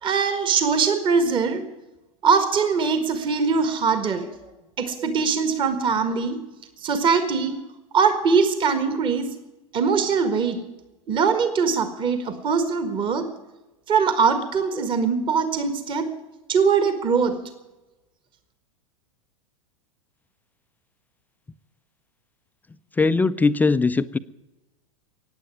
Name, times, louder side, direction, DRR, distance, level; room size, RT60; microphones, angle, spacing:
voice 1, 0.0-1.7 2.2-4.4 4.8-6.4 6.8-7.6 7.9-9.4 9.7-10.7 11.1-13.3 13.9-16.2 16.5-17.4, right 5 dB, 30° right, 10 dB, 1.7 m, -22 dB
voice 2, 23.0-24.2, left 4 dB, 10° left, 13 dB, 0.4 m, -20 dB
15.0 x 9.6 x 9.5 m, 1.1 s
figure-of-eight pair, 95°, 17 cm